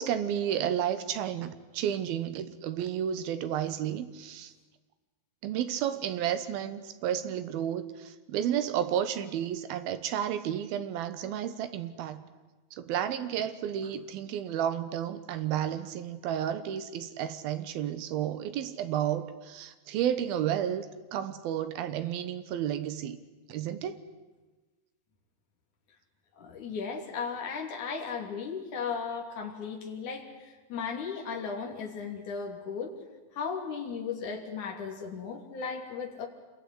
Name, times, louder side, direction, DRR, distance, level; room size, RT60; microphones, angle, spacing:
voice 1, 0.0-4.5 5.4-12.2 12.7-20.9 21.1-23.2 23.5-24.0, right 10 dB, 90° right, 11 dB, 3.1 m, -32 dB
voice 2, 26.4-33.0 33.3-36.3, left 5 dB, 55° left, 1 dB, 4.4 m, -36 dB
27.0 x 21.5 x 9.7 m, 1.2 s
omnidirectional pair, 4.2 m